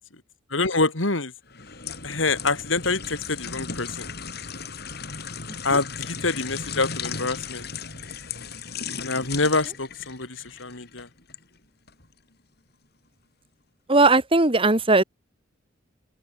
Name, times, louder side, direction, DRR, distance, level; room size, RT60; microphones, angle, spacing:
voice 1, 0.5-1.3 2.0-4.1 5.6-7.7 9.0-11.1, left 3 dB, 85° left, 3.9 m, -26 dB
sound 1, 1.5-11.4 11.9-12.1, left 5 dB, 55° left, 5.5 m, -36 dB
voice 2, 13.9-15.0, right 2 dB, 30° right, 2.0 m, -18 dB
open air
head